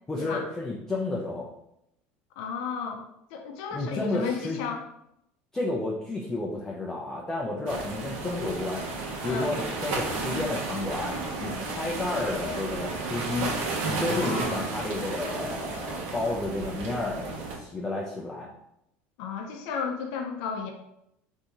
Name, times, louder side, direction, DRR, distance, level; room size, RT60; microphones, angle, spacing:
voice 1, 0.1-1.5 3.7-4.6 5.5-8.8 9.2-13.5 13.8-18.5, left 2 dB, 10° left, -3 dB, 0.4 m, -31 dB
voice 2, 2.4-3.0 3.3-4.8 9.2-9.6 14.1-14.5 19.2-20.7, left 6 dB, 70° left, 3 dB, 0.5 m, -33 dB
sound 1, 7.7-17.6, right 3 dB, 75° right, 0.8 m, -33 dB
3.4 x 2.6 x 2.9 m, 0.80 s
cardioid pair, 160°, 5 cm